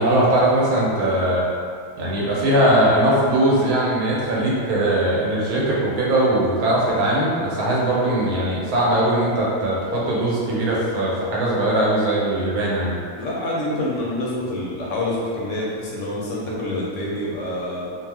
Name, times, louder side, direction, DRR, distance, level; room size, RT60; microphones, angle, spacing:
voice 1, 0.0-1.4 2.0-13.0, right 1 dB, 85° right, -5 dB, 1.2 m, -20 dB
voice 2, 13.2-17.9, left 1 dB, 65° left, -5 dB, 0.8 m, -27 dB
2.7 x 2.0 x 3.3 m, 2.2 s
omnidirectional pair, 1.6 m